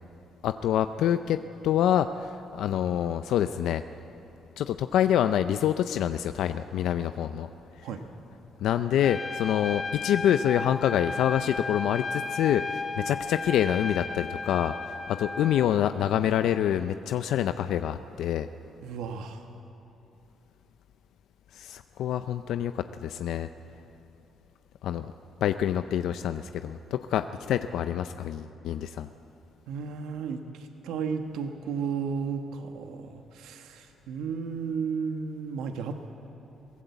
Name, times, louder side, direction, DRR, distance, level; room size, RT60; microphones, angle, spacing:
voice 1, 0.4-3.8 4.6-7.5 8.6-18.5 21.5-23.5 24.8-25.1 25.4-29.1, left 10 dB, 80° left, 10 dB, 0.5 m, -26 dB
Trumpet, 9.0-15.7, left 3 dB, 30° left, 1.3 m, -34 dB
voice 2, 18.8-19.4 29.7-36.0, right 6 dB, 90° right, 6 dB, 1.3 m, -33 dB
23.0 x 17.5 x 8.2 m, 2.9 s
cardioid pair, 90°, 0 cm